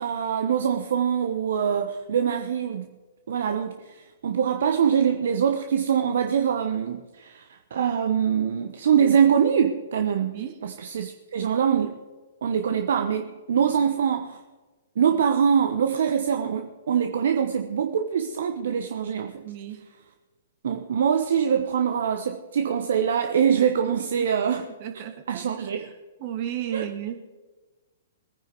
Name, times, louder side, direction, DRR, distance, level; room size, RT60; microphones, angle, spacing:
voice 1, 0.0-2.9 3.3-12.0 12.4-14.4 15.0-19.4 20.6-24.7 25.3-25.9 26.7-26.9, right 7 dB, 60° right, 6 dB, 1.0 m, -24 dB
voice 2, 10.2-10.5 19.4-19.8 23.8-24.3 24.8-25.4 26.2-27.3, right 10 dB, 45° right, 5 dB, 2.6 m, -34 dB
22.0 x 9.8 x 4.6 m, 1.3 s
figure-of-eight pair, 115°, 0 cm